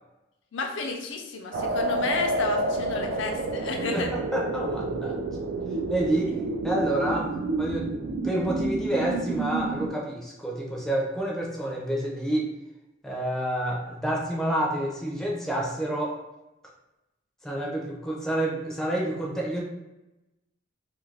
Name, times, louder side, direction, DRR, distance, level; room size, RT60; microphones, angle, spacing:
voice 1, 0.5-4.1, left 4 dB, 65° left, 3 dB, 0.4 m, -31 dB
sound 1, 1.5-9.9, right 2 dB, 65° right, 0.3 m, -29 dB
voice 2, 3.9-5.2 5.9-6.4 6.6-7.3 7.6-12.5 13.0-16.2 17.4-19.6, right 1 dB, ahead, -3 dB, 0.5 m, -28 dB
2.7 x 2.4 x 3.2 m, 0.97 s
head